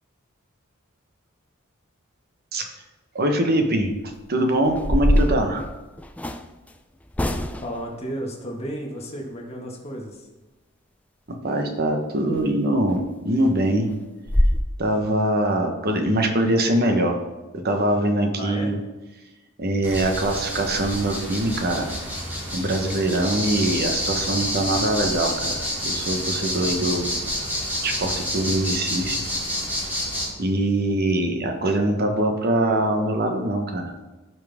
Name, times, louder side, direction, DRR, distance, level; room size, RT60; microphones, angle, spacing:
voice 1, 3.1-5.6 11.3-13.9 14.8-17.2 17.5-18.8 19.6-21.9 22.5-27.1 27.4-27.5 27.8-29.2 30.4-33.9, right 1 dB, 50° right, 4 dB, 1.2 m, -23 dB
sound 1, 3.8-4.1 4.7-6.5 7.1-7.8 12.3-12.5 12.9-13.0 13.4-13.5 13.9-14.0 14.3-14.6, left 1 dB, 5° left, 0.4 m, -22 dB
voice 2, 7.6-10.3 18.4-18.7, equal, 30° left, -1 dB, 1.8 m, -33 dB
sound 2, 19.8-30.3, equal, 10° right, 3.0 m, -28 dB
16.0 x 5.8 x 3.6 m, 1.1 s
head